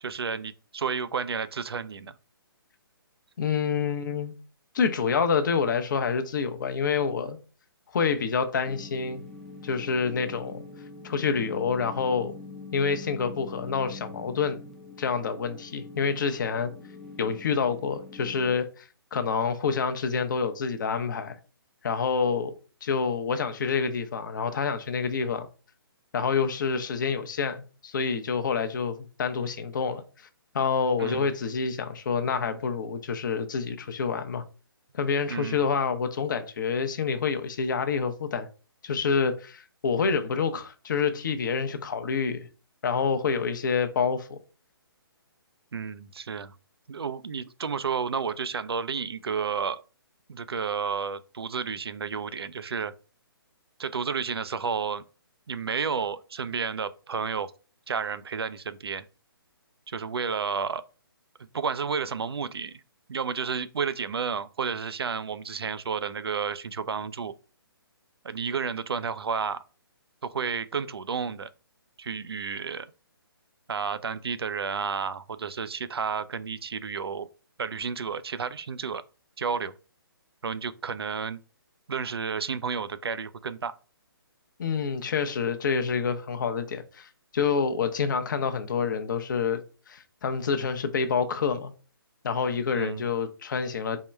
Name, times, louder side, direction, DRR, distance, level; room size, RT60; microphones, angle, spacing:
voice 1, 0.0-2.1 31.0-31.3 35.3-35.6 45.7-46.6 46.9-49.8 50.3-52.9 53.8-55.0 55.5-57.5 57.9-59.0 59.9-60.8 61.5-62.7 63.1-67.3 68.2-69.6 70.2-71.5 72.0-72.9 73.7-77.3 77.6-79.0 79.4-79.7 80.4-81.4 81.9-83.7 92.7-93.0, right 6 dB, 80° right, 0.4 m, -31 dB
voice 2, 3.4-4.3 4.7-7.4 7.9-9.2 9.6-10.6 11.0-12.3 12.7-14.6 15.0-16.7 17.2-21.4 21.8-22.5 22.8-25.5 26.1-30.3 30.5-34.4 34.9-38.5 38.8-42.5 42.8-44.4 84.6-91.7 92.2-94.0, left 5 dB, 55° left, 0.7 m, -27 dB
sound 1, 8.7-18.6, left 3 dB, 5° left, 0.4 m, -44 dB
3.6 x 2.2 x 4.3 m
hypercardioid pair, 145°, 13 cm